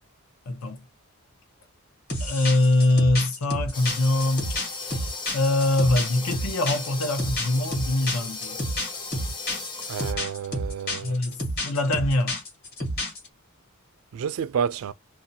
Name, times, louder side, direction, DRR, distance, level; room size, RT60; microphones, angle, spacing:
voice 1, 0.5-0.8 2.2-8.6 11.0-12.4, left 2 dB, 80° left, 0.7 m, -24 dB
sound 1, 2.1-13.3, left 1 dB, 45° left, 1.3 m, -30 dB
sound 2, 3.7-10.1, left 3 dB, 20° left, 0.5 m, -36 dB
voice 2, 9.9-11.2 14.1-14.9, right 7 dB, 75° right, 0.3 m, -29 dB
2.6 x 2.2 x 2.6 m
head